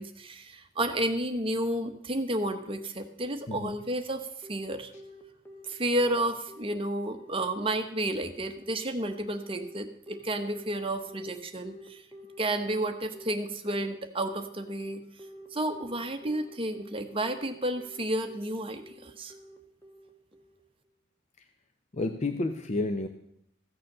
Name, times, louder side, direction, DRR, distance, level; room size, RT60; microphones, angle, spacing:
voice 1, 0.0-4.9 5.6-12.0 12.4-15.0 15.5-19.3, right 1 dB, 25° right, 6 dB, 1.0 m, -31 dB
Telephone, 4.4-20.6, left 1 dB, 15° left, 1.5 m, -49 dB
voice 2, 21.9-23.1, left 2 dB, 35° left, 7 dB, 0.6 m, -30 dB
15.0 x 6.8 x 6.6 m, 0.75 s
head